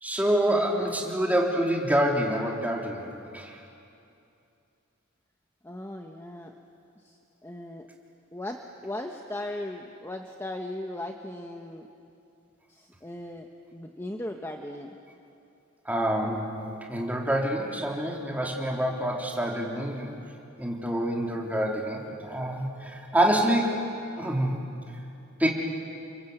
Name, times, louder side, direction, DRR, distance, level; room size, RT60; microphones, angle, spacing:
voice 1, 0.0-3.6 15.9-20.1 20.6-23.7 24.2-24.6 25.4-25.5, right 1 dB, 10° right, -1 dB, 3.3 m, -27 dB
voice 2, 0.5-1.1 5.6-6.5 7.0-7.9 8.3-11.9 12.7-15.0, left 1 dB, 10° left, 3 dB, 1.1 m, -38 dB
29.5 x 24.5 x 8.0 m, 2.7 s
head